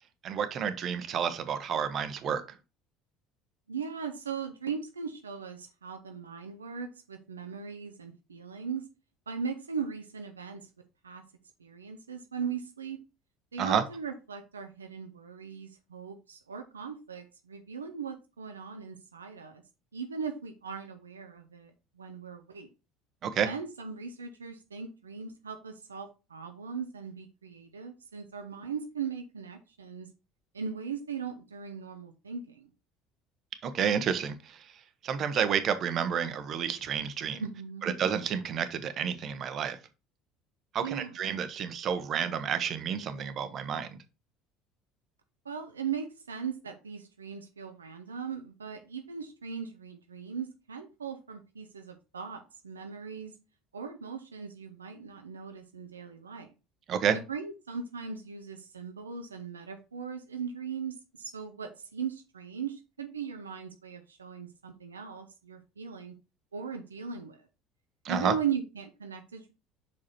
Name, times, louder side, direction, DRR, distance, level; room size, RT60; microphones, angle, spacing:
voice 1, 0.2-2.4 13.6-13.8 23.2-23.5 33.6-34.7 35.0-37.4 37.8-39.8 40.7-44.0 56.9-57.2 68.0-68.3, right 7 dB, 45° right, 1.0 m, -30 dB
voice 2, 3.7-8.9 9.3-10.6 11.0-11.2 11.6-13.0 13.5-19.6 19.9-21.7 22.0-22.7 23.4-30.1 30.5-32.7 37.4-37.9 40.8-41.1 45.4-53.4 53.7-56.5 57.1-66.1 66.5-67.5 68.1-69.5, right 6 dB, 90° right, 0.7 m, -38 dB
5.9 x 4.9 x 4.3 m
hypercardioid pair, 65°, 0 cm